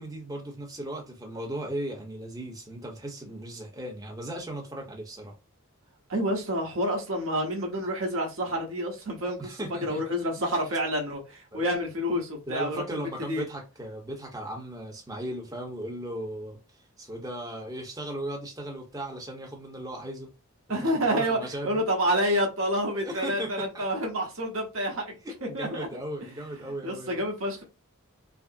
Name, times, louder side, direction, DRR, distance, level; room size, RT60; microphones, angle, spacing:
voice 1, 0.0-5.4 9.4-10.0 11.5-11.6 12.5-20.3 20.8-21.8 23.0-23.9 25.5-27.2, right 1 dB, 15° right, 0.8 m, -37 dB
voice 2, 6.1-12.8 13.3-13.4 20.7-21.4 21.6-25.1 25.5-25.9 26.8-27.6, equal, 65° right, 1.2 m, -28 dB
4.8 x 2.0 x 2.6 m
head